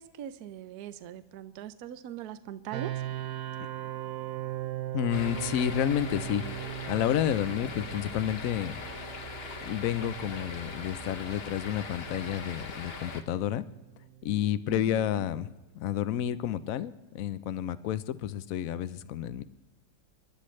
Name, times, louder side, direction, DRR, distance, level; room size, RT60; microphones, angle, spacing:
voice 1, 0.0-2.9 14.7-15.3, right 10 dB, 65° right, 11 dB, 1.0 m, -41 dB
sound 1, 2.7-15.5, right 14 dB, 80° right, 1.5 m, -40 dB
voice 2, 4.9-6.4 6.9-8.8 9.6-13.6 14.2-15.5 15.7-19.4, left 11 dB, 70° left, 14 dB, 0.8 m, -30 dB
sound 2, 5.1-13.2, left 3 dB, 40° left, 0.9 m, -41 dB
27.5 x 11.5 x 3.2 m, 1.1 s
omnidirectional pair, 2.0 m